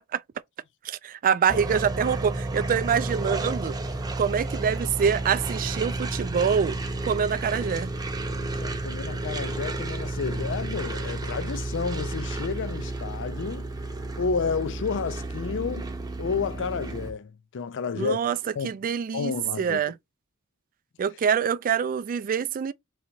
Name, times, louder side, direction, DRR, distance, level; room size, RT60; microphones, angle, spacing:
voice 1, 0.8-3.8 4.2-6.8 7.1-7.9 18.0-18.4 18.6-19.9 21.0-22.7, right 7 dB, 40° right, 0.3 m, -25 dB
sound 1, 1.5-17.1, right 2 dB, 20° right, 0.7 m, -32 dB
voice 2, 8.2-13.7 14.2-15.9 16.2-18.2 18.6-18.7 19.1-19.8, left 5 dB, 55° left, 0.5 m, -31 dB
3.8 x 2.8 x 4.3 m
head